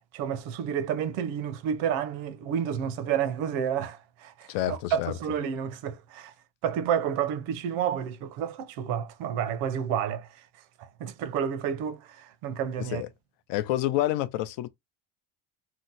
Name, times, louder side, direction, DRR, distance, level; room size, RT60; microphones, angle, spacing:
voice 1, 0.1-6.3 6.6-10.4 10.8-13.0, right 8 dB, 75° right, 0.7 m, -30 dB
voice 2, 4.5-5.1 12.8-13.1 13.5-14.7, left 14 dB, 60° left, 0.5 m, -28 dB
2.8 x 2.1 x 3.9 m
cardioid pair, 180°, 48 cm